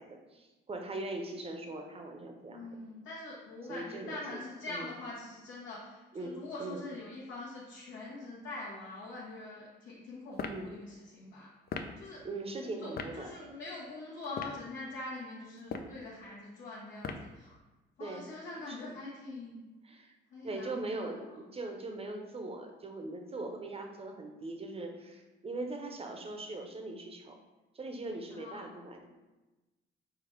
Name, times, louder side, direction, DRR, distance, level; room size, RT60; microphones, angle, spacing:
voice 1, 0.0-2.8 3.7-4.4 4.7-4.9 6.1-6.8 10.5-10.7 12.2-13.3 18.0-18.3 18.7-19.0 19.8-20.1 20.4-27.4 27.7-29.1, right 2 dB, 30° right, 3 dB, 0.7 m, -41 dB
voice 2, 2.5-11.5 12.0-12.2 12.6-17.6 18.0-19.6 20.3-21.3 28.3-28.7, left 2 dB, 75° left, -6 dB, 1.0 m, -44 dB
sound 1, 10.3-10.6 11.7-11.9 13.0-13.1 14.2-14.6 15.6-16.0 17.0-17.3, left 5 dB, 50° left, 0.4 m, -38 dB
4.9 x 2.3 x 4.5 m, 1.1 s
cardioid pair, 90°, 20 cm